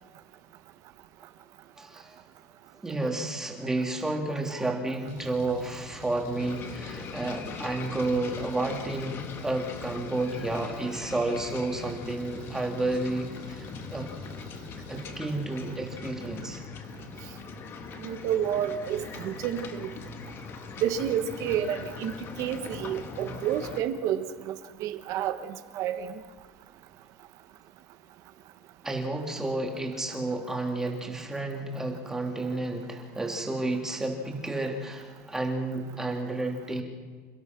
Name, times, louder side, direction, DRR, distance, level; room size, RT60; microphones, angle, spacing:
voice 1, 1.8-2.2 2.8-14.1 14.9-16.6 28.8-36.8, right 2 dB, 5° right, 1 dB, 3.0 m, -31 dB
Engine, 5.1-15.1, left 4 dB, 75° left, 6.5 m, -46 dB
sound 1, 6.4-23.8, left 5 dB, 35° left, 1.8 m, -41 dB
voice 2, 18.0-19.9 20.8-22.1 22.4-24.5 24.8-26.1, right 9 dB, 50° right, 9 dB, 1.5 m, -30 dB
29.0 x 16.5 x 6.1 m, 1.5 s
cardioid pair, 165°, 7 cm